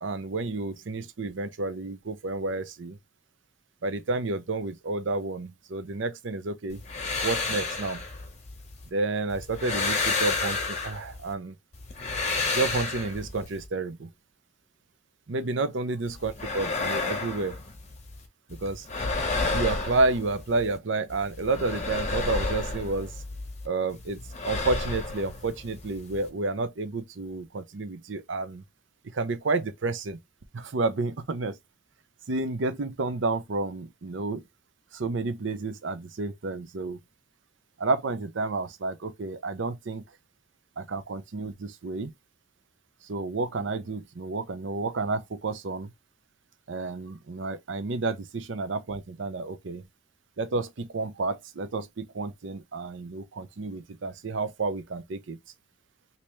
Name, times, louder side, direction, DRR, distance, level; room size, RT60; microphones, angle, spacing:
voice 1, 0.0-3.0 3.8-6.8 7.2-8.0 8.9-11.6 12.5-14.1 15.3-17.6 18.5-18.8 19.5-23.1 23.7-28.6 29.1-30.2 30.5-31.5 32.3-34.4 34.9-37.0 37.8-40.0 40.8-42.1 43.1-45.9 46.7-49.9 50.4-55.4, right 3 dB, 65° right, 0.6 m, -30 dB
sound 1, 6.7-8.9 9.3-11.3 11.7-13.7 16.1-18.3 18.5-20.8 21.1-23.7 23.9-26.3, left 3 dB, 35° left, 0.8 m, -31 dB
3.3 x 2.8 x 3.0 m
head